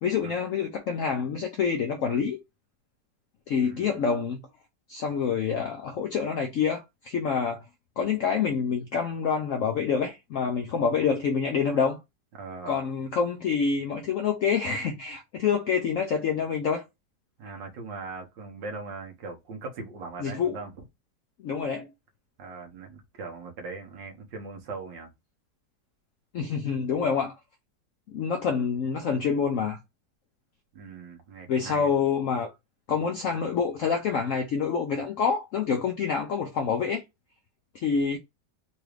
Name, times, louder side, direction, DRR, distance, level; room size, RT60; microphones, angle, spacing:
voice 1, 0.0-2.4 3.5-4.5 4.9-7.6 8.0-12.0 12.7-16.8 20.2-20.6 21.4-21.9 26.3-27.3 28.1-29.8 31.5-32.5 32.9-37.0 37.7-38.2, left 6 dB, 80° left, 0.7 m, -27 dB
voice 2, 3.6-4.0 12.4-12.8 17.4-20.7 22.4-25.1 30.7-31.9, right 4 dB, 85° right, 1.7 m, -40 dB
3.9 x 2.4 x 3.1 m
omnidirectional pair, 1.9 m